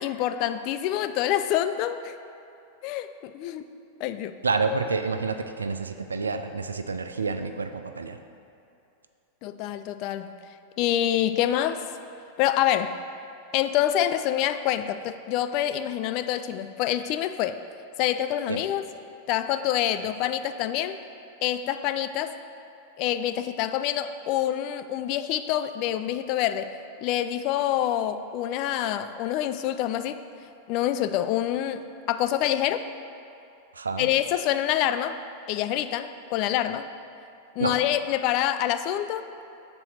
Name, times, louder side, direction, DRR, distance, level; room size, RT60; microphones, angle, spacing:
voice 1, 0.0-2.1 2.8-3.7 4.0-4.4 9.4-10.3 10.8-11.8 12.4-13.0 13.5-17.6 18.0-18.8 19.3-21.0 21.4-22.3 23.0-26.7 27.0-30.2 30.7-31.8 32.1-32.8 34.0-35.2 35.5-36.9 37.6-39.2, left 11 dB, 40° left, 10 dB, 0.3 m, -26 dB
voice 2, 4.4-8.2 18.5-18.6 33.7-34.1 37.6-37.8, right 4 dB, 75° right, 8 dB, 0.4 m, -28 dB
7.4 x 4.0 x 6.3 m, 2.7 s
figure-of-eight pair, 90°, 0 cm